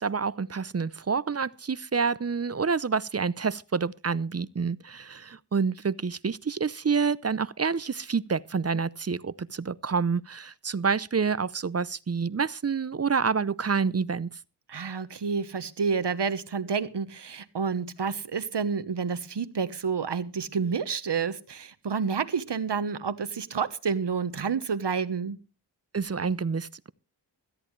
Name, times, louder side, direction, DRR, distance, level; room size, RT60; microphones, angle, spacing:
voice 1, 0.0-14.3 25.9-26.9, right 5 dB, 35° right, 0.6 m, -28 dB
voice 2, 14.7-25.4, right 5 dB, 70° right, 1.2 m, -29 dB
17.0 x 13.5 x 3.2 m
wide cardioid pair, 55°, 43 cm